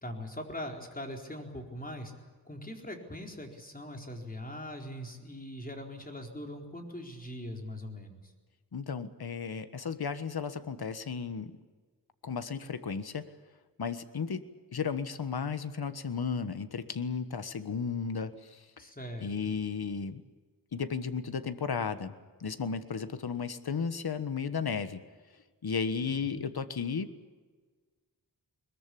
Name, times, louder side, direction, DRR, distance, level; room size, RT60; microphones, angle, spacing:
voice 1, 0.0-2.1 2.5-8.2 18.8-19.5 26.0-26.4, left 1 dB, 20° left, 2 dB, 4.2 m, -41 dB
voice 2, 8.7-11.5 12.2-13.2 13.8-14.4 14.7-18.8 19.2-20.2 20.7-22.1 22.4-25.0 25.6-27.1, left 6 dB, 65° left, 11 dB, 1.4 m, -34 dB
21.5 x 21.5 x 8.5 m, 1.4 s
wide cardioid pair, 90°, 40 cm